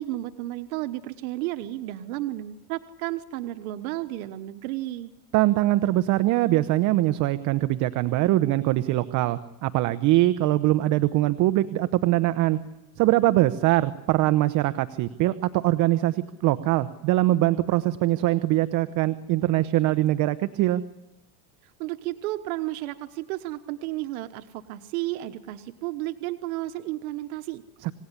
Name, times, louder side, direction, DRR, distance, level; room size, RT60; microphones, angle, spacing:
voice 1, 0.0-5.1 21.6-27.6, right 16 dB, 90° right, 9 dB, 1.2 m, -32 dB
voice 2, 5.3-12.6 13.0-20.8 27.8-27.9, right 16 dB, 45° right, 12 dB, 0.9 m, -22 dB
27.0 x 17.5 x 9.9 m, 1.0 s
cardioid pair, 150°, 42 cm